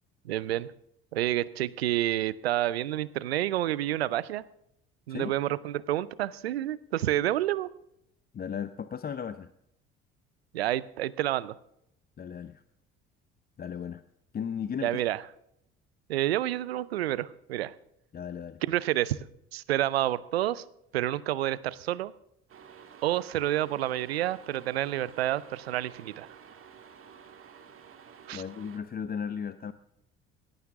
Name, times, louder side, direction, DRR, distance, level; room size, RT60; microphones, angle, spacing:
voice 1, 0.2-0.7 1.1-4.4 5.1-7.7 10.5-11.5 14.8-15.2 16.1-17.7 18.7-19.2 19.5-20.6 20.9-22.1 23.0-26.4 28.3-28.4, right 13 dB, 90° right, 20 dB, 0.5 m, -29 dB
voice 2, 8.3-9.5 12.2-12.6 13.6-14.0 14.3-15.0 18.1-18.6 28.3-29.7, left 7 dB, 30° left, 12 dB, 0.7 m, -35 dB
sound 1, 22.5-28.8, right 7 dB, 45° right, 1.8 m, -51 dB
17.5 x 14.0 x 3.6 m, 0.76 s
hypercardioid pair, 60°, 30 cm